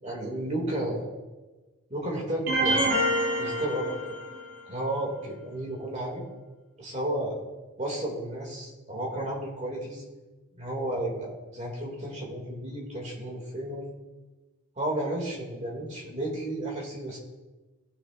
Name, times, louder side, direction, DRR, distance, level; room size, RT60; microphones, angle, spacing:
voice 1, 0.0-1.1 1.9-2.9 3.4-4.2 4.7-6.2 6.8-7.4 7.8-10.0 10.5-13.9 14.8-17.2, right 1 dB, 30° right, -2 dB, 2.4 m, -32 dB
sound 1, 2.5-4.6, right 1 dB, 60° right, 3.1 m, -27 dB
19.0 x 6.5 x 2.6 m, 1.2 s
head